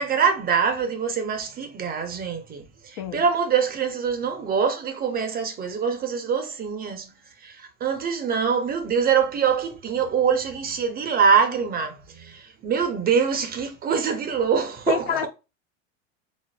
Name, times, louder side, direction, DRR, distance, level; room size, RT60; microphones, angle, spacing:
voice 1, 0.0-7.1 7.4-15.3, right 6 dB, 25° right, 0.5 m, -24 dB
voice 2, 14.9-15.3, left 9 dB, 55° left, 0.5 m, -27 dB
3.9 x 2.4 x 2.2 m
hypercardioid pair, 95°, 40 cm